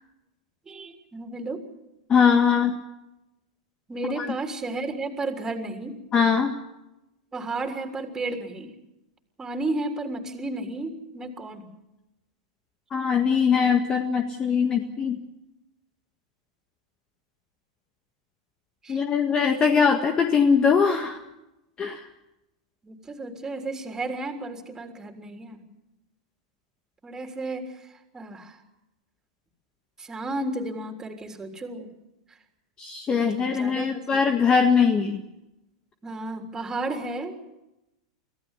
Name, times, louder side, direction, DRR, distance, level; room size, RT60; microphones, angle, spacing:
voice 1, 0.7-1.7 3.9-6.0 7.3-8.7 9.4-11.7 18.8-19.0 22.8-25.6 27.0-27.9 28.1-28.6 30.0-31.9 32.3-32.4 33.2-34.2 36.0-37.4, right 2 dB, 15° right, 4 dB, 3.5 m, -33 dB
voice 2, 2.1-2.7 4.2-4.3 6.1-6.5 12.9-15.2 18.9-21.2 21.8-22.1 32.8-35.2, left 6 dB, 25° left, 6 dB, 1.7 m, -21 dB
25.5 x 16.0 x 8.2 m, 0.94 s
hypercardioid pair, 115°, 3 cm